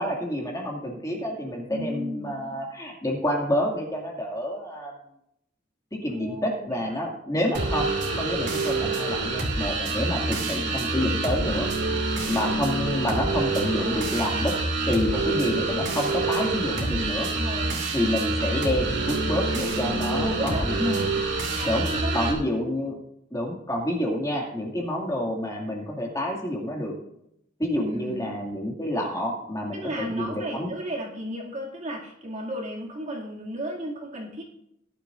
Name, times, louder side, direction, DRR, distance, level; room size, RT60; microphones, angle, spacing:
voice 1, 0.0-4.9 5.9-11.7 12.3-14.5 14.8-17.3 17.9-21.0 21.6-21.9 22.1-23.0 23.3-26.9 27.6-30.7, left 1 dB, 20° left, 0 dB, 2.2 m, -28 dB
voice 2, 1.7-2.3 6.2-7.1 10.3-10.9 13.7-14.2 16.7-17.8 20.1-20.8 21.6-22.3 27.8-28.3 29.7-34.4, equal, 40° right, -2 dB, 2.4 m, -34 dB
sound 1, 7.5-22.3, right 3 dB, 65° right, 2.5 m, -27 dB
18.0 x 11.5 x 2.6 m, 0.78 s
head